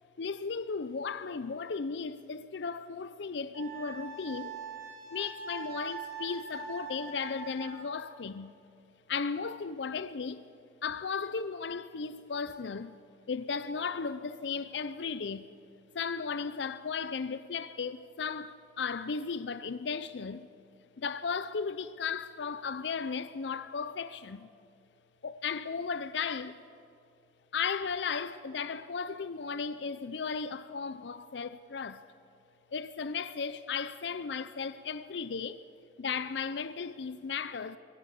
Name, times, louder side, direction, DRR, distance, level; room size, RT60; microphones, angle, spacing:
voice 1, 0.2-4.5 5.1-8.5 9.1-10.5 10.8-13.0 13.3-15.5 15.9-20.5 21.0-24.5 25.2-26.6 27.5-32.0 32.7-35.6 36.0-37.8, left 5 dB, 75° left, 0.5 m, -35 dB
Wind instrument woodwind instrument, 3.5-7.9, right 5 dB, 50° right, 7.2 m, -43 dB
22.5 x 15.0 x 8.2 m
head